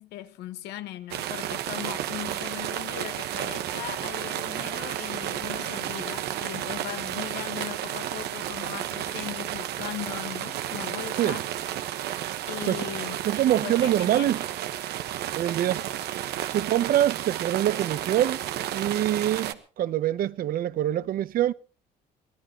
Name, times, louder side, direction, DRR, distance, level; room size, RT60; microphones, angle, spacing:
voice 1, 0.0-11.5 12.5-14.4, left 13 dB, 85° left, 1.5 m, -39 dB
sound 1, 1.1-19.5, right 12 dB, 75° right, 1.3 m, -32 dB
voice 2, 13.3-14.4 15.4-15.8 16.5-18.4 18.7-21.5, right 12 dB, 60° right, 0.8 m, -25 dB
24.5 x 17.0 x 3.0 m
cardioid pair, 110°, 17 cm